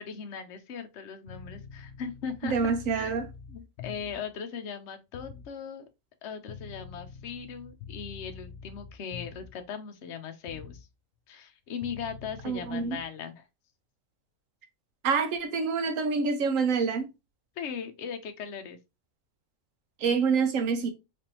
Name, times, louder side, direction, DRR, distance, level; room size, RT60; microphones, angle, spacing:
voice 1, 0.0-3.1 3.5-5.9 6.2-10.9 11.3-13.4 17.6-18.8, left 6 dB, 65° left, 0.9 m, -39 dB
sound 1, 1.3-4.3 5.1-5.5 6.5-9.7 10.5-10.9 11.8-13.0, left 6 dB, 90° left, 1.1 m, -45 dB
voice 2, 2.4-3.3 12.4-13.0 15.0-17.1 20.0-20.9, right 5 dB, 75° right, 1.1 m, -27 dB
3.4 x 3.3 x 2.9 m
omnidirectional pair, 1.4 m